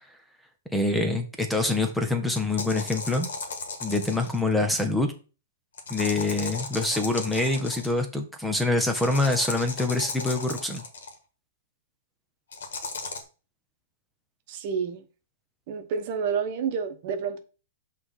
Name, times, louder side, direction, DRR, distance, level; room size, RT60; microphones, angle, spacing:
voice 1, 0.7-3.3 3.8-5.1 5.9-10.8, left 2 dB, 5° left, 0.8 m, -25 dB
sound 1, 2.3-4.5 5.8-8.0 8.9-11.1 12.5-13.2, left 4 dB, 80° left, 1.6 m, -36 dB
voice 2, 14.5-15.0 15.7-17.4, right 6 dB, 50° right, 1.0 m, -29 dB
5.9 x 3.3 x 5.7 m
hypercardioid pair, 135°, 0 cm